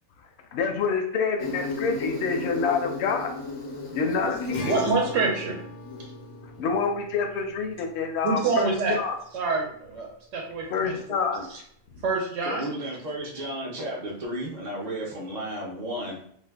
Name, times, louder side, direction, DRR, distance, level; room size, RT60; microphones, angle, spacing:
voice 1, 0.5-3.3 3.9-4.7 6.6-9.2 10.7-11.5, left 5 dB, 65° left, 4 dB, 0.7 m, -27 dB
Insect, 1.4-6.4, left 3 dB, 45° left, 0.4 m, -34 dB
voice 2, 4.2-5.6 8.2-9.0 9.3-11.0 11.5-11.6 12.0-12.7, right 4 dB, 70° right, 0 dB, 0.8 m, -27 dB
Acoustic guitar, 4.5-10.0, left 2 dB, 85° left, 1.2 m, -43 dB
voice 3, 12.4-16.2, right 1 dB, 55° right, -3 dB, 0.5 m, -33 dB
2.6 x 2.2 x 3.3 m, 0.66 s
omnidirectional pair, 1.4 m